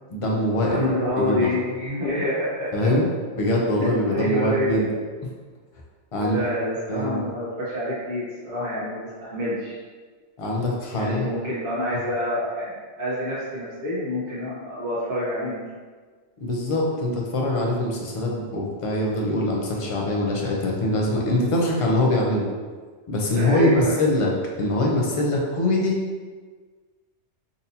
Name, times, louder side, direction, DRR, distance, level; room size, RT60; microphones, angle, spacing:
voice 1, 0.1-0.8 1.2-1.5 2.7-3.1 3.4-4.9 6.1-6.4 6.9-7.3 10.4-11.3 16.4-22.5 23.1-24.3 24.6-26.0, left 1 dB, 40° left, -2 dB, 0.5 m, -23 dB
voice 2, 0.6-2.9 4.1-5.0 6.2-9.8 10.9-15.6 23.3-24.0, left 1 dB, 75° right, -10 dB, 1.3 m, -27 dB
4.0 x 2.7 x 2.7 m, 1.5 s
omnidirectional pair, 1.2 m